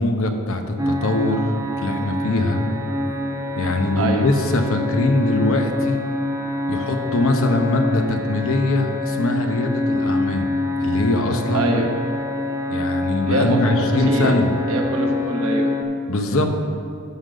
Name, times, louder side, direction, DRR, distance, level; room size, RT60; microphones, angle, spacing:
voice 1, 0.0-1.4 1.8-2.6 3.6-6.0 6.7-10.5 10.8-11.7 12.7-14.5 16.1-16.5, left 2 dB, 60° left, 5 dB, 0.8 m, -22 dB
sound 1, 0.8-15.8, left 1 dB, 15° right, 0.6 m, -25 dB
voice 2, 11.5-11.9 13.2-14.4 14.7-15.7, right 2 dB, 65° right, 1 dB, 1.1 m, -23 dB
11.5 x 3.9 x 6.4 m, 2.5 s
head